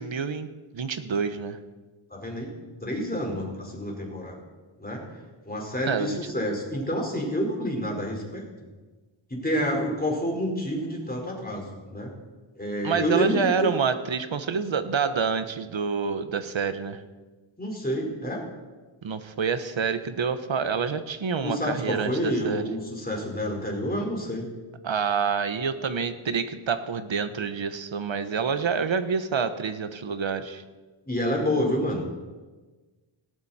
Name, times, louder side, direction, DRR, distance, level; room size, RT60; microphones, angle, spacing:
voice 1, 0.0-1.6 5.9-6.2 12.8-17.0 19.0-22.6 24.8-30.6, right 6 dB, 65° right, 10 dB, 1.3 m, -27 dB
voice 2, 2.1-2.5 2.8-4.4 4.8-5.0 5.4-8.4 9.3-12.1 12.6-13.7 17.6-18.4 21.4-24.5 31.1-32.1, equal, 20° left, -1 dB, 4.7 m, -28 dB
18.5 x 17.5 x 4.4 m, 1.3 s
wide cardioid pair, 100°, 49 cm